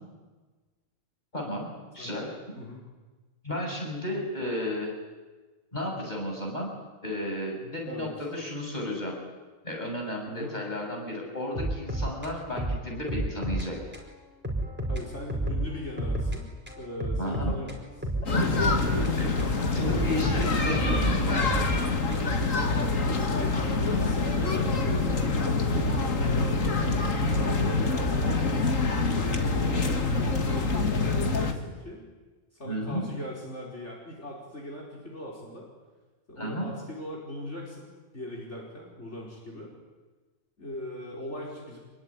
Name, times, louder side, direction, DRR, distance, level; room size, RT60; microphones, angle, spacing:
voice 1, 1.3-2.3 3.4-4.9 5.7-6.7 7.0-9.2 9.6-13.8 17.2-17.5 18.2-18.6 19.2-19.3 19.7-21.6 32.6-33.1 36.4-36.7, left 1 dB, 35° left, 0 dB, 7.2 m, -33 dB
sound 1, 11.5-13.7 13.9-14.1 14.4-16.4 16.7-19.5 19.9-22.4, right 1 dB, 10° right, 4.9 m, -31 dB
voice 2, 14.9-16.5 16.8-18.1 18.7-19.1 22.6-26.0 27.1-28.7 28.9-32.1 32.6-35.7 36.3-39.7 40.6-41.8, left 1 dB, 60° left, -2 dB, 5.3 m, -40 dB
sound 2, 18.3-31.5, left 3 dB, 75° left, 2.5 m, -26 dB
26.0 x 22.5 x 9.9 m, 1.3 s
omnidirectional pair, 1.4 m